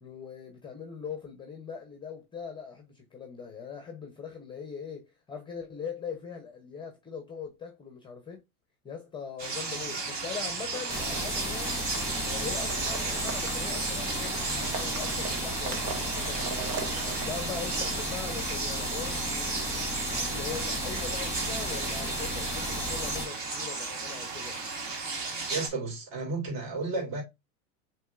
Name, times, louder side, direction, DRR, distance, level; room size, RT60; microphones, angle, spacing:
voice 1, 0.0-8.4 8.8-11.8 12.2-19.9 20.2-24.6, left 6 dB, 10° left, 0.6 m, -41 dB
sound 1, 9.4-25.7, right 3 dB, 70° right, 2.1 m, -35 dB
sound 2, 10.6-18.6, right 5 dB, 85° right, 1.5 m, -42 dB
sound 3, 10.9-23.3, equal, 5° right, 1.4 m, -34 dB
voice 2, 25.5-27.2, right 3 dB, 50° right, 3.0 m, -32 dB
6.1 x 3.1 x 2.4 m
supercardioid pair, 130°, 45 cm